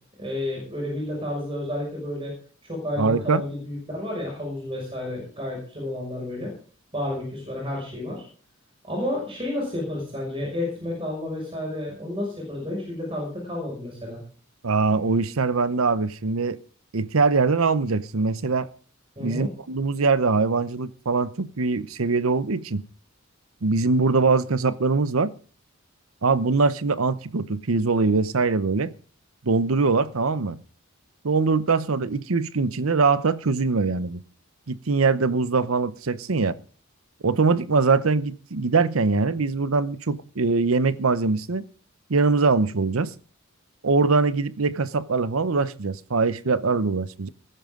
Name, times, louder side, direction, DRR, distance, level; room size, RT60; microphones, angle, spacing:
voice 1, 0.2-2.3 2.6-6.5 6.9-8.2 8.9-14.2 19.2-19.5, left 1 dB, 25° right, 6.0 m, -31 dB
voice 2, 3.0-3.4 14.6-16.6 16.9-18.7 19.2-22.8 23.6-25.3 26.2-28.9 29.4-30.6 31.2-34.2 34.7-36.6 37.2-41.6 42.1-43.1 43.8-47.3, right 4 dB, 85° right, 0.8 m, -22 dB
20.0 x 11.0 x 3.8 m
head